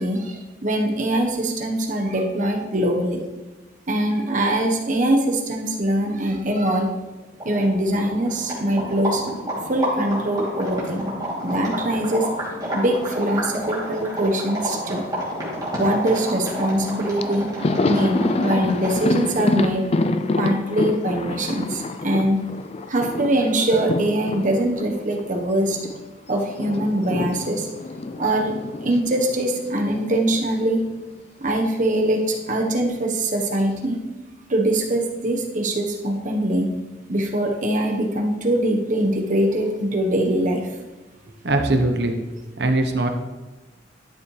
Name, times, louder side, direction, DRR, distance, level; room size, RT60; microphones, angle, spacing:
voice 1, 0.0-3.2 3.9-6.9 7.4-9.2 9.7-11.1 11.4-12.3 12.7-15.0 15.8-17.5 17.9-19.9 20.4-22.4 22.9-25.8 26.3-27.7 28.2-28.5 28.8-30.8 31.4-34.0 34.5-36.7 37.1-40.7, right 1 dB, 45° right, 2 dB, 1.2 m, -22 dB
sound 1, 7.3-19.1, equal, 20° right, 2.9 m, -29 dB
Thunder, 17.2-26.0 26.3-30.6 30.8-31.0 32.2-32.9, left 2 dB, 35° left, 0.4 m, -27 dB
voice 2, 41.4-42.2 42.6-43.1, right 2 dB, 60° right, 5 dB, 1.0 m, -20 dB
11.5 x 7.1 x 3.3 m, 1.1 s
head